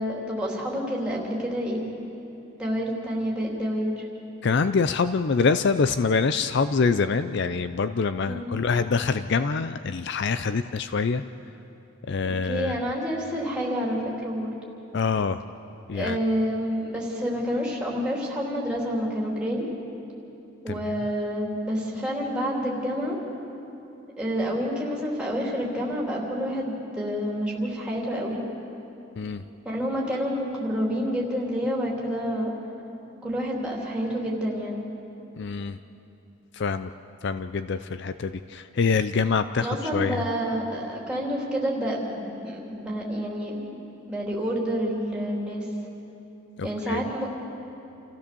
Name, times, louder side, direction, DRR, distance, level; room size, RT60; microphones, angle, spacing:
voice 1, 0.0-1.9 2.6-3.9 8.3-8.6 12.2-14.5 15.9-19.7 20.6-23.2 24.2-28.4 29.6-32.5 33.2-34.8 39.6-43.8 44.1-45.7 46.6-47.3, equal, 5° right, -4 dB, 3.3 m, -28 dB
voice 2, 4.4-11.2 12.1-12.8 14.9-15.4 15.9-16.2 20.7-20.9 29.2-29.5 35.4-35.8 36.5-36.9 37.2-40.2 46.6-47.0, left 5 dB, 55° left, 11 dB, 0.4 m, -25 dB
28.5 x 15.5 x 6.9 m, 2.9 s
head